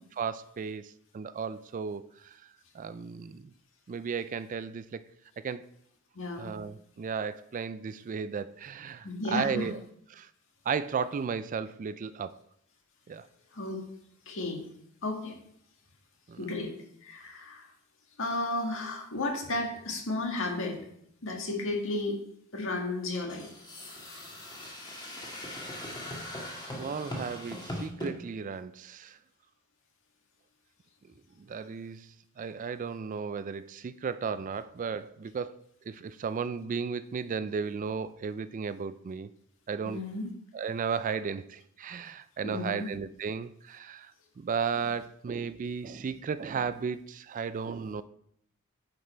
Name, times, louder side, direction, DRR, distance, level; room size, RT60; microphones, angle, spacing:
voice 1, 0.2-2.4 2.7-3.5 3.9-5.1 5.4-5.7 6.4-9.8 10.1-10.3 10.7-12.4 13.1-13.3 16.3-16.5 26.6-29.2 31.4-39.3 39.7-40.0 40.5-44.1 44.4-48.0, right 6 dB, 35° right, 0.3 m, -35 dB
voice 2, 6.2-6.5 9.0-9.7 13.5-13.8 14.3-14.6 15.0-15.3 16.4-16.7 17.0-17.7 18.2-20.9 21.2-22.2 22.5-23.5 39.8-40.3 42.4-42.9, left 2 dB, 65° left, 1.8 m, -33 dB
sound 1, 23.3-28.1, left 1 dB, 20° left, 1.7 m, -40 dB
9.7 x 5.3 x 4.4 m
head